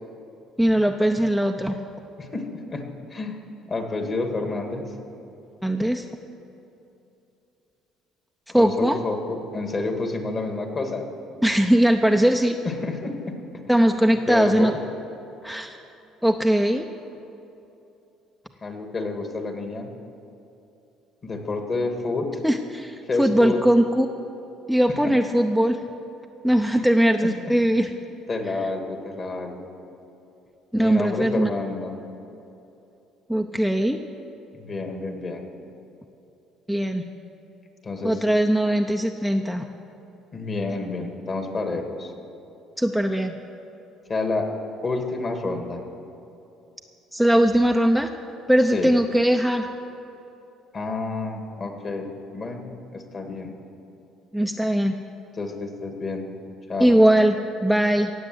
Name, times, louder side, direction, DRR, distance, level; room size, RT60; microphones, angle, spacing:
voice 1, 0.6-1.8 5.6-6.0 8.5-9.0 11.4-12.6 13.7-14.7 15.4-15.8 16.2-16.9 22.4-24.1 24.7-25.8 26.4-27.9 30.7-31.5 33.3-34.0 36.7-37.0 38.0-39.7 42.8-43.3 47.1-48.1 48.5-49.7 54.3-55.0 56.8-58.1, right 1 dB, ahead, 5 dB, 0.7 m, -20 dB
voice 2, 2.2-3.4 3.7-4.9 8.6-11.1 12.6-13.4 14.1-14.8 18.6-19.9 21.2-22.3 23.0-23.6 25.0-25.2 26.7-26.9 27.2-27.3 28.3-29.7 30.8-32.0 34.5-35.4 37.8-38.2 40.3-42.1 44.1-44.5 44.8-45.8 48.7-48.9 50.7-52.1 52.3-53.6 55.3-56.3 56.7-57.0, left 3 dB, 40° left, 4 dB, 2.2 m, -29 dB
17.5 x 7.3 x 7.9 m, 2.9 s
supercardioid pair, 80°, 0 cm